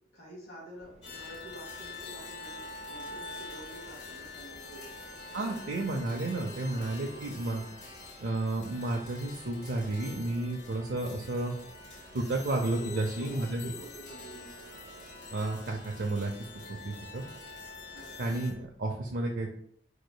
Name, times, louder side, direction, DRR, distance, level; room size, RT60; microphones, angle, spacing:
voice 1, 0.1-4.9 5.3-5.8 6.1-7.6 12.8-14.7 17.9-18.3, right 1 dB, 55° left, -4 dB, 1.8 m, -48 dB
sound 1, 0.8-18.7, right 1 dB, 40° right, 0.7 m, -55 dB
sound 2, 1.0-18.5, left 3 dB, 70° left, 1.3 m, -46 dB
voice 2, 5.3-7.6 8.2-11.5 12.1-13.7 15.3-16.3 16.8-17.2 18.2-19.5, right 2 dB, 80° right, 0 dB, 0.6 m, -32 dB
4.9 x 4.7 x 2.2 m, 0.66 s
head